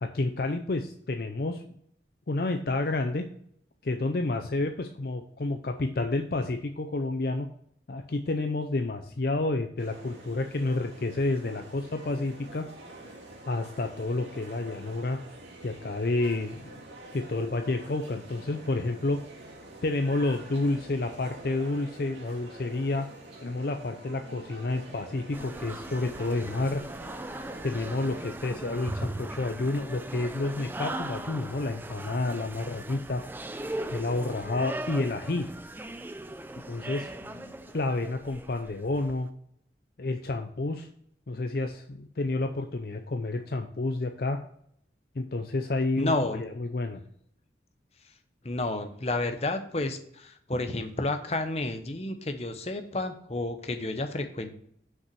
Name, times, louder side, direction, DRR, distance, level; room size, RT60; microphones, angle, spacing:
voice 1, 0.0-1.8 2.3-3.2 3.8-7.5 7.9-12.7 13.5-15.2 15.6-16.8 17.1-19.2 19.8-23.1 23.4-26.8 27.6-33.2 33.9-35.5 36.7-39.3 40.0-40.9 41.3-44.4 45.2-47.0, left 2 dB, 55° left, 5 dB, 0.5 m, -30 dB
sound 1, 9.8-28.3, right 1 dB, 75° right, 2.4 m, -47 dB
sound 2, 25.3-39.2, right 1 dB, 10° right, 0.4 m, -39 dB
voice 2, 46.0-46.4 48.4-54.6, left 2 dB, 35° left, 6 dB, 0.9 m, -31 dB
6.0 x 5.4 x 6.2 m, 0.67 s
head